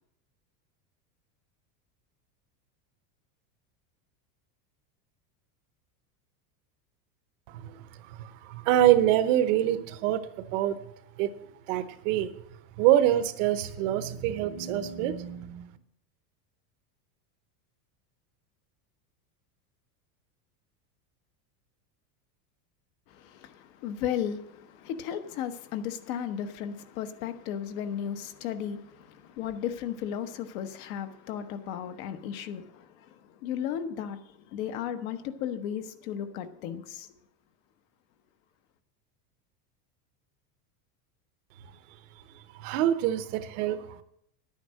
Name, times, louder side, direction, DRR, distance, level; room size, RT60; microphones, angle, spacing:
voice 1, 7.5-10.8 11.2-11.3 11.7-12.3 12.8-15.7 42.6-44.0, right 12 dB, 50° right, 0.9 m, -26 dB
voice 2, 23.1-37.1, left 9 dB, 55° left, 1.1 m, -35 dB
10.5 x 9.4 x 6.3 m
supercardioid pair, 170°, 48 cm